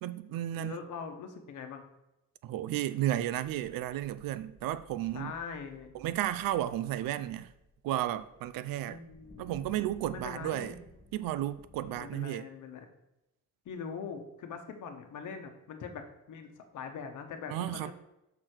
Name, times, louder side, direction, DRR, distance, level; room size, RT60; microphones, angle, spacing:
voice 1, 0.0-0.8 2.4-5.3 5.9-7.5 7.8-9.0 9.4-10.7 11.1-12.5 17.5-17.9, right 13 dB, 85° right, 0.5 m, -33 dB
voice 2, 0.5-1.8 5.1-5.9 8.8-9.5 10.1-10.8 11.8-12.9 13.6-17.9, left 6 dB, 60° left, 1.1 m, -42 dB
sound 1, 4.5-12.1, left 1 dB, 5° left, 1.0 m, -57 dB
6.5 x 6.0 x 4.4 m
cardioid pair, 145°, 33 cm